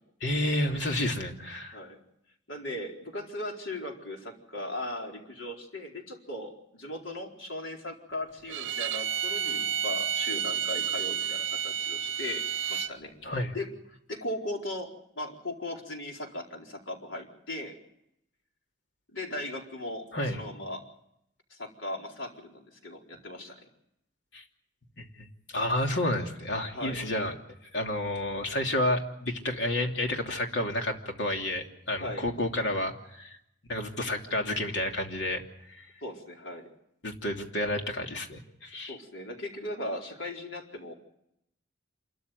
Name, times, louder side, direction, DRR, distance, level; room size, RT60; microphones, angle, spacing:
voice 1, 0.2-1.8 13.2-13.5 20.1-20.4 24.3-24.4 25.0-25.1 25.5-27.3 27.7-33.3 33.7-35.4 37.0-38.9, left 1 dB, 70° left, 2 dB, 3.0 m, -30 dB
voice 2, 2.5-13.7 14.1-17.8 19.1-20.8 21.5-23.7 26.7-27.0 32.0-32.2 36.0-36.7 38.8-40.9, left 1 dB, 85° left, 1 dB, 4.5 m, -38 dB
Bowed string instrument, 8.5-12.9, right 9 dB, 80° right, 0.9 m, -31 dB
27.5 x 13.5 x 9.4 m, 0.78 s
head